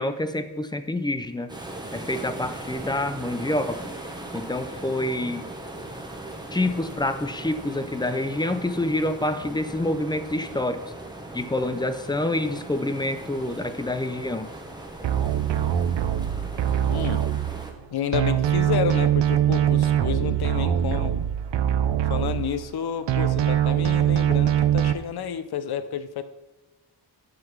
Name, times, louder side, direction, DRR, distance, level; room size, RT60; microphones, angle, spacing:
voice 1, 0.0-1.5 1.9-3.8 4.3-5.5 6.5-10.8 11.3-14.5, left 1 dB, 10° left, 10 dB, 0.4 m, -27 dB
sound 1, 1.5-17.7, right 1 dB, 10° right, 0.9 m, -39 dB
sound 2, 15.0-17.8 18.1-22.8 23.1-24.9, right 11 dB, 85° right, 0.6 m, -23 dB
voice 2, 16.9-17.2 17.9-21.2 22.1-26.2, left 8 dB, 65° left, 12 dB, 0.6 m, -30 dB
10.5 x 4.0 x 7.1 m, 1.2 s
wide cardioid pair, 170°, 42 cm